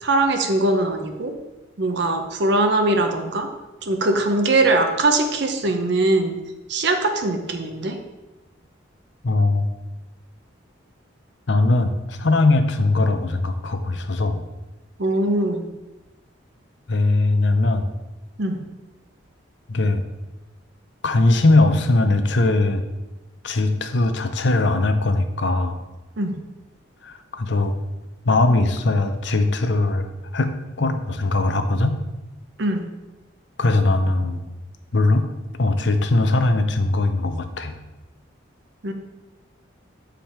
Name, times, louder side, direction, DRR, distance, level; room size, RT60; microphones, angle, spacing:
voice 1, 0.0-1.3 1.8-3.5 3.8-6.4 6.7-8.0 15.0-15.7 18.4-18.6 26.2-26.4 32.6-32.9 38.8-38.9, right 2 dB, 55° right, 5 dB, 0.7 m, -21 dB
voice 2, 9.2-9.7 11.5-14.4 16.9-17.9 19.7-20.0 21.0-22.8 23.4-25.8 27.0-27.7 28.3-30.5 30.8-32.0 33.6-34.5 34.9-35.3 35.6-37.8, left 2 dB, 60° left, 7 dB, 0.7 m, -20 dB
7.5 x 5.0 x 4.4 m, 1.0 s
head